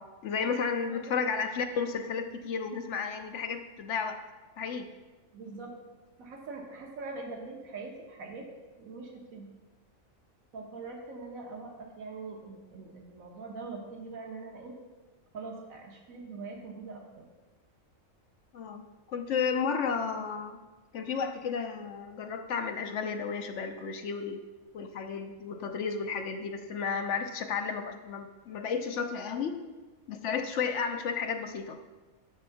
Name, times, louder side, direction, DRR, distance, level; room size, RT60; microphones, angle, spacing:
voice 1, 0.2-4.2 4.6-4.9 18.5-20.6 20.9-24.4 24.7-29.6 30.1-31.8, left 6 dB, 65° left, 6 dB, 1.0 m, -33 dB
voice 2, 0.9-1.2 5.3-5.8 6.2-8.5 8.8-9.5 10.5-14.7 15.3-17.2, right 3 dB, 85° right, 1 dB, 1.5 m, -42 dB
10.5 x 3.5 x 7.0 m, 1.2 s
omnidirectional pair, 1.4 m